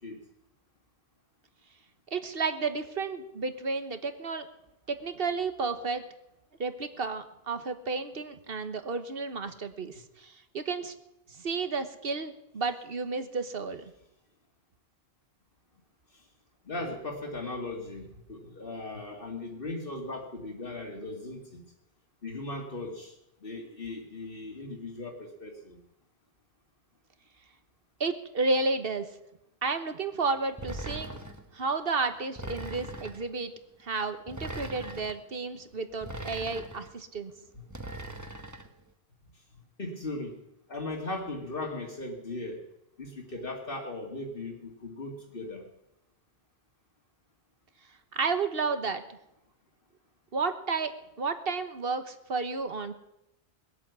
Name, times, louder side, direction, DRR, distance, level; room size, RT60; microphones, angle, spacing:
voice 1, 2.1-4.5 4.9-6.0 6.6-10.9 11.3-13.8 28.0-29.1 29.6-31.2 31.5-33.5 33.8-37.3 48.1-49.2 50.3-52.9, right 4 dB, 65° right, 9 dB, 1.4 m, -32 dB
voice 2, 16.6-21.6 22.2-23.1 23.4-25.8 37.5-37.6 39.8-40.4 40.7-42.6 43.0-45.6, left 2 dB, 60° left, 0 dB, 2.3 m, -38 dB
sound 1, 30.6-31.5 32.4-33.3 34.3-35.2 36.0-36.9 37.7-38.7, right 1 dB, 20° right, 1.2 m, -40 dB
20.5 x 8.5 x 8.2 m, 0.87 s
omnidirectional pair, 1.0 m